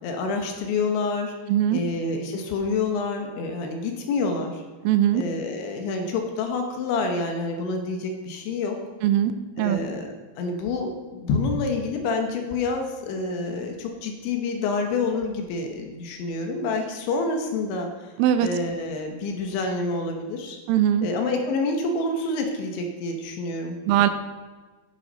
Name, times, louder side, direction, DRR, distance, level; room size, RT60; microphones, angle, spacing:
voice 1, 0.0-1.3 1.7-4.6 5.1-8.8 9.6-18.1 18.4-20.6 21.0-23.8, left 3 dB, 75° left, 3 dB, 3.1 m, -28 dB
voice 2, 1.5-1.8 4.8-5.2 9.0-9.3 9.6-9.8 18.2-18.5 20.7-21.1 23.9-24.1, right 11 dB, 85° right, 10 dB, 3.1 m, -20 dB
11.0 x 10.5 x 4.0 m, 1.3 s
omnidirectional pair, 5.8 m